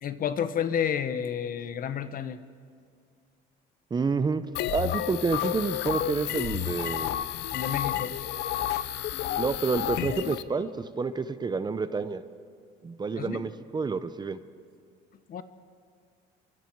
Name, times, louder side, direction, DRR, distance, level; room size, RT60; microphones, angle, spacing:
voice 1, 0.0-2.4 7.5-8.1 13.2-13.4 15.3-15.4, left 8 dB, 50° left, 12 dB, 1.2 m, -30 dB
voice 2, 3.9-4.5 4.7-7.2 9.4-12.2 12.8-14.4, right 4 dB, 25° right, 12 dB, 0.8 m, -29 dB
sound 1, 4.6-10.4, left 12 dB, 65° left, 0.8 m, -31 dB
29.0 x 24.0 x 4.7 m, 2.1 s
cardioid pair, 115°, 19 cm